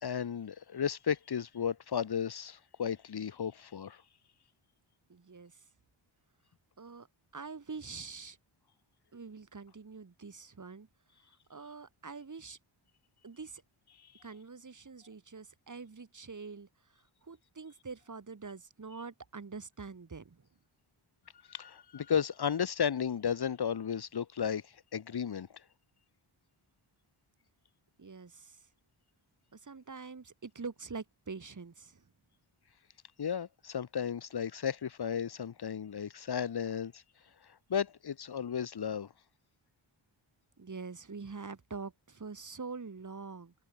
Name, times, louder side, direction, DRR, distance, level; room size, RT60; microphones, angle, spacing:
voice 1, 0.0-4.0 21.5-25.6 33.2-37.0 37.7-39.1, left 7 dB, 50° left, 1.1 m, -34 dB
voice 2, 5.1-5.6 6.8-7.1 7.3-8.4 9.1-10.9 11.5-12.6 13.2-13.6 14.2-16.7 17.2-20.4 28.0-28.6 29.5-32.0 40.6-43.5, right 4 dB, 35° right, 3.8 m, -45 dB
wide cardioid pair, 160°, 50 cm